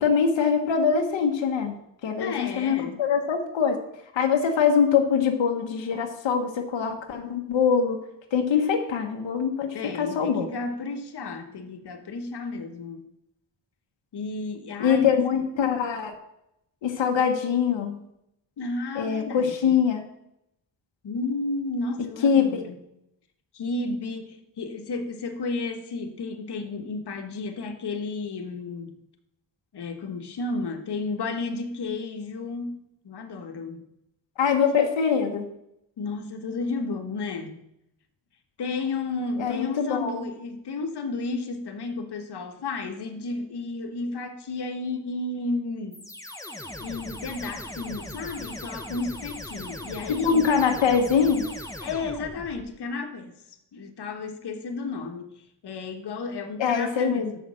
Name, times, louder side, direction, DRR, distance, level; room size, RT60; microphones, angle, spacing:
voice 1, 0.0-1.8 2.0-3.8 4.1-8.0 8.3-10.5 14.8-16.1 16.8-18.0 18.9-20.0 22.2-22.6 34.4-35.5 39.4-40.1 50.1-51.4 56.6-57.4, left 6 dB, 90° left, 4 dB, 1.2 m, -23 dB
voice 2, 2.2-3.0 9.7-13.0 14.1-15.3 18.6-19.8 21.0-22.8 23.5-28.9 29.7-32.8 33.0-33.8 36.0-37.6 38.6-46.1 46.8-50.4 51.8-53.4 53.7-55.3 55.6-57.3, left 3 dB, 60° left, 5 dB, 1.3 m, -32 dB
sound 1, 45.9-52.7, left 1 dB, 5° left, 0.9 m, -39 dB
6.3 x 6.3 x 7.5 m, 0.79 s
cardioid pair, 90°, 44 cm